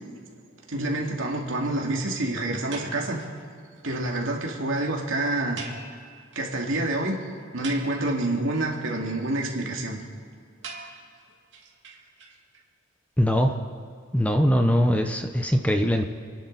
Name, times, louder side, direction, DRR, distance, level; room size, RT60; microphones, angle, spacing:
voice 1, 0.7-3.2 3.8-5.6 6.4-7.2 7.5-10.0, right 2 dB, 80° right, 0 dB, 2.5 m, -27 dB
sound 1, 2.7-3.4 3.8-3.9 4.0-4.2 4.4-4.5 4.7-4.8 5.6-6.6 6.9-7.0 7.4-8.4 10.6-12.6, right 4 dB, 60° right, 2.5 m, -42 dB
voice 2, 13.2-13.6 14.1-16.0, equal, 5° left, 5 dB, 0.7 m, -21 dB
29.0 x 11.0 x 4.1 m, 2.3 s
head